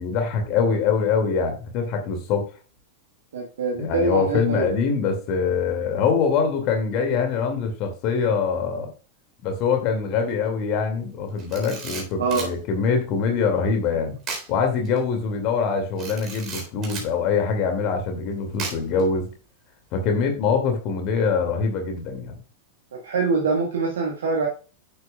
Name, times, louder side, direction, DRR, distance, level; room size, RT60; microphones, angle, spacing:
voice 1, 0.0-2.5 3.8-8.9 9.4-14.2 14.5-19.3 19.9-22.4, left 5 dB, 40° left, 4 dB, 2.2 m, -24 dB
voice 2, 3.3-4.6 12.2-12.5 23.0-24.5, right 4 dB, 60° right, -1 dB, 1.5 m, -24 dB
Camera, 11.4-12.5 14.2-14.5 14.8-15.0 16.0-17.1 18.6-19.0, right 4 dB, 35° right, 3.7 m, -34 dB
10.5 x 8.4 x 2.3 m, 0.35 s
figure-of-eight pair, 90°, 0 cm